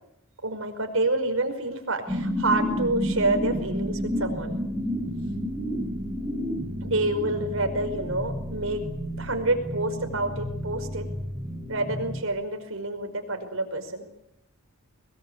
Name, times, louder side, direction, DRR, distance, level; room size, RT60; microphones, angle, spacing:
voice 1, 0.4-4.6 6.8-8.8 9.2-11.1 11.7-14.1, right 2 dB, 70° right, 6 dB, 5.2 m, -28 dB
sound 1, 2.1-12.2, equal, 5° right, 6.8 m, -31 dB
23.5 x 22.0 x 8.6 m, 0.77 s
head